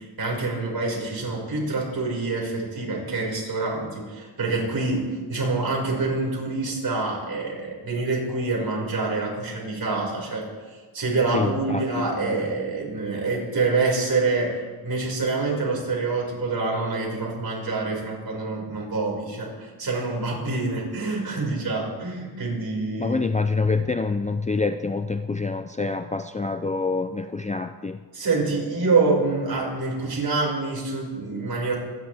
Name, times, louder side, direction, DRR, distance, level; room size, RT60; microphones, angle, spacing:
voice 1, 0.0-10.5 10.9-23.2 28.1-31.8, right 3 dB, 50° right, -2 dB, 5.7 m, -26 dB
voice 2, 11.3-12.4 23.0-28.0, left 4 dB, 15° left, 9 dB, 0.5 m, -26 dB
25.5 x 11.0 x 3.5 m, 1.4 s
cardioid pair, 80°, 44 cm